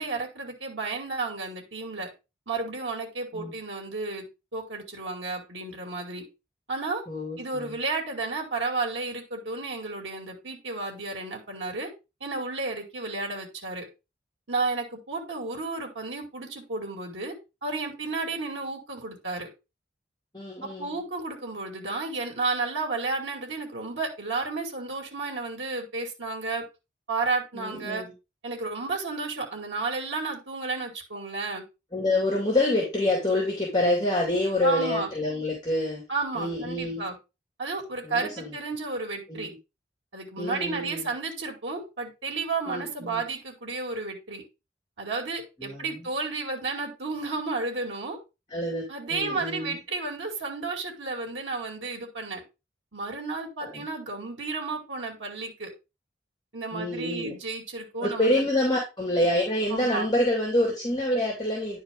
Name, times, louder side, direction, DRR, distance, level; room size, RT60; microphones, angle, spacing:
voice 1, 0.0-2.1 2.5-4.2 4.5-6.3 6.7-7.0 7.4-11.9 12.2-13.9 14.5-17.3 17.6-19.5 20.6-26.6 27.1-28.0 28.4-31.6 34.6-35.1 36.1-37.2 37.6-39.5 40.1-44.4 45.0-48.2 48.9-52.4 52.9-55.7 56.5-58.5 59.7-60.1, right 3 dB, 85° right, 0 dB, 2.4 m, -32 dB
voice 2, 7.1-7.7 20.3-20.9 27.5-28.1 31.9-36.0 36.3-37.1 38.0-38.5 39.3-39.5 40.4-41.1 42.7-43.2 45.6-46.1 48.5-48.8 49.1-49.8 53.6-53.9 56.7-57.4 58.0-61.8, left 1 dB, 20° left, -3 dB, 2.6 m, -27 dB
10.0 x 4.6 x 3.8 m, 0.27 s
head